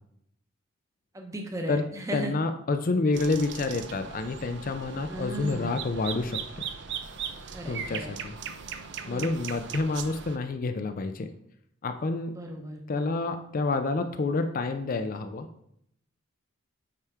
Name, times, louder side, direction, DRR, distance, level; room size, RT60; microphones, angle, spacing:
voice 1, 1.1-2.3 5.1-5.7 7.5-8.1 9.0-9.4 12.3-12.8, equal, 15° right, 3 dB, 0.8 m, -36 dB
voice 2, 2.1-6.6 7.7-8.3 9.1-11.3 11.8-12.3 12.9-15.5, left 3 dB, 40° left, 8 dB, 0.4 m, -28 dB
sound 1, 3.1-10.4, right 7 dB, 55° right, 0.6 m, -38 dB
8.5 x 4.7 x 3.5 m, 0.73 s
head